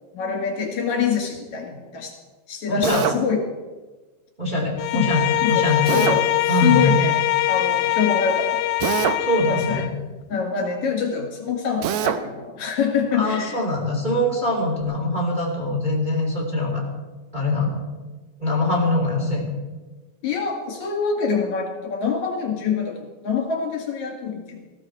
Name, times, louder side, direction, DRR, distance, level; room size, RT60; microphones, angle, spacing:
voice 1, 0.1-2.2 2.5-3.4 4.9-5.1 5.4-5.7 5.9-7.1 7.5-8.6 9.5-9.8 10.3-13.6 20.2-24.7, left 6 dB, 60° left, 1 dB, 3.4 m, -25 dB
voice 2, 2.7-3.0 4.4-6.2 6.5-6.9 9.2-9.9 13.1-16.8 17.3-17.8 18.4-19.5, left 1 dB, 15° right, -2 dB, 2.7 m, -23 dB
Drill, 2.8-3.2 5.9-6.2 8.8-9.3 11.8-12.2, right 10 dB, 70° right, 1.8 m, -24 dB
Bowed string instrument, 4.8-10.0, left 16 dB, 85° left, 2.3 m, -22 dB
19.5 x 15.0 x 4.6 m, 1.3 s
omnidirectional pair, 4.0 m